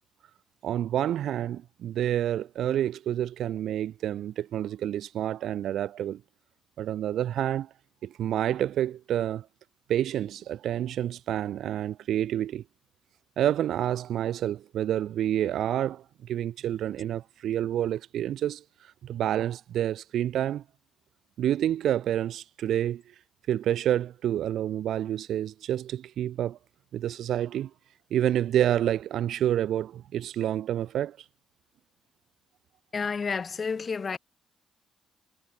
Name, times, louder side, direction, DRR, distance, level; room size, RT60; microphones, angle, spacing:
voice 1, 0.6-6.2 6.8-7.7 8.0-9.5 9.9-12.6 13.4-18.6 19.0-20.6 21.4-23.0 23.5-26.6 26.9-27.7 28.1-31.2, right 11 dB, 75° right, 1.4 m, -28 dB
voice 2, 32.9-34.2, left 5 dB, 40° left, 3.2 m, -30 dB
cardioid pair, 90°, 0 cm